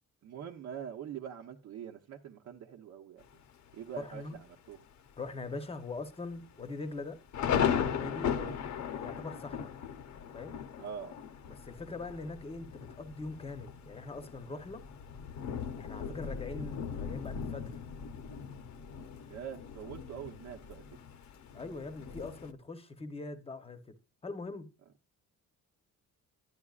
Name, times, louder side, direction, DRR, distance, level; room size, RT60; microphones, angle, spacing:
voice 1, 0.2-3.2 3.7-4.8 8.3-8.6 10.8-11.2 19.3-20.8, right 8 dB, 65° right, 0.9 m, -44 dB
Thunder, 3.2-3.7 4.3-4.4 4.7-5.1 5.4-5.5 6.2-22.5, left 8 dB, 65° left, 0.8 m, -37 dB
voice 2, 4.0-4.4 5.2-7.2 7.8-8.5 8.9-9.7 10.3-10.6 11.5-14.8 15.8-17.8 21.5-23.9 24.2-24.7, left 3 dB, 20° left, 0.8 m, -42 dB
11.0 x 10.5 x 2.4 m
cardioid pair, 180°, 31 cm